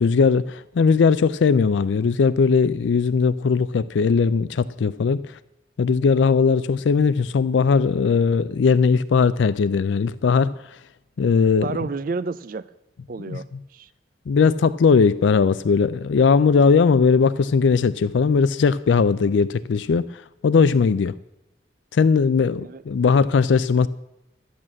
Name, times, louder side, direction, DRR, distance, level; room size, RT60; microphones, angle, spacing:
voice 1, 0.0-5.4 5.8-10.5 11.2-11.7 13.3-13.4 14.3-21.1 21.9-23.9, left 5 dB, 80° left, 16 dB, 0.4 m, -19 dB
voice 2, 11.6-12.7 13.1-13.9 22.6-22.8, right 4 dB, 50° right, 15 dB, 0.4 m, -30 dB
12.0 x 8.7 x 7.5 m, 0.90 s
head